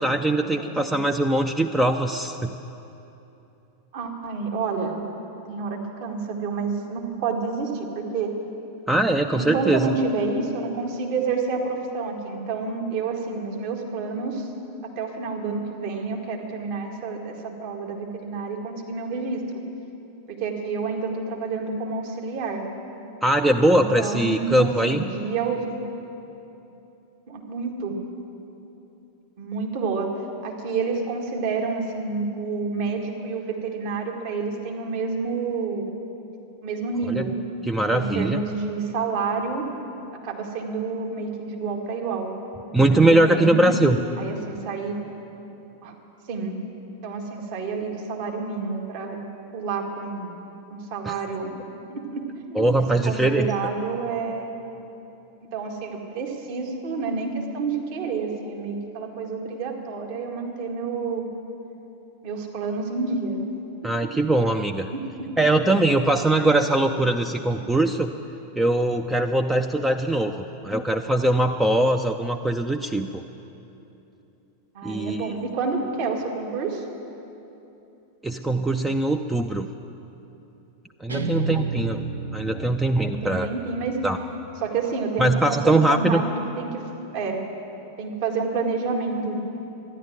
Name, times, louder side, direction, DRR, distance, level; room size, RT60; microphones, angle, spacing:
voice 1, 0.0-2.5 8.9-10.0 23.2-25.0 37.1-37.3 37.6-38.4 42.7-44.0 51.0-51.2 52.5-53.5 63.8-64.9 65.4-68.1 68.6-73.2 74.8-75.3 78.2-79.7 81.0-82.0 82.3-83.5 84.0-84.2 85.2-86.2, right 1 dB, 10° right, 5 dB, 0.5 m, -21 dB
voice 2, 0.6-1.0 3.9-5.0 5.5-8.4 9.4-14.5 14.8-19.6 20.3-22.6 23.7-25.9 27.3-28.0 29.4-30.1 30.4-35.9 36.6-37.4 37.9-39.7 40.2-42.3 42.9-43.8 44.2-45.0 45.8-45.9 46.3-46.6 47.0-49.2 49.5-50.3 50.7-51.6 51.9-54.5 55.5-61.3 62.2-63.4 63.8-64.1 64.9-65.3 67.5-67.6 74.7-76.8 81.1-81.6 82.5-82.7 83.0-84.0 84.6-86.8 87.1-87.4 88.0-89.4, right 4 dB, 45° right, 1 dB, 1.9 m, -29 dB
Guitar, 81.1-84.3, right 3 dB, 75° right, 0.9 m, -32 dB
13.5 x 11.0 x 9.1 m, 2.9 s
figure-of-eight pair, 90°, 0 cm